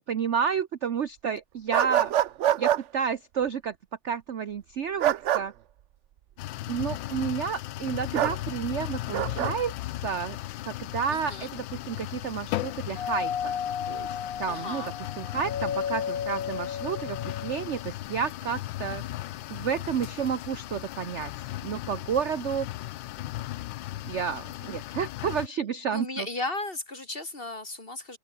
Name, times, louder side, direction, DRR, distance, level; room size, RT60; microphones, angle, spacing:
voice 1, 0.1-2.1 2.6-3.7 4.0-5.5 6.7-9.7 10.0-10.4 10.7-13.6 13.9-14.1 14.4-19.0 19.5-21.3 21.6-22.7 24.0-26.3, right 7 dB, 50° right, 0.9 m, -31 dB
sound 1, 1.7-2.8 5.0-5.4 8.1-8.4 9.1-9.5, right 11 dB, 80° right, 0.6 m, -24 dB
sound 2, 6.4-25.5, left 15 dB, 85° left, 1.4 m, -37 dB
voice 2, 11.1-11.5 14.5-14.9 25.8-28.2, left 2 dB, 30° left, 3.3 m, -35 dB
Doorbell, 13.0-17.8, left 8 dB, 50° left, 1.6 m, -33 dB
open air
omnidirectional pair, 2.0 m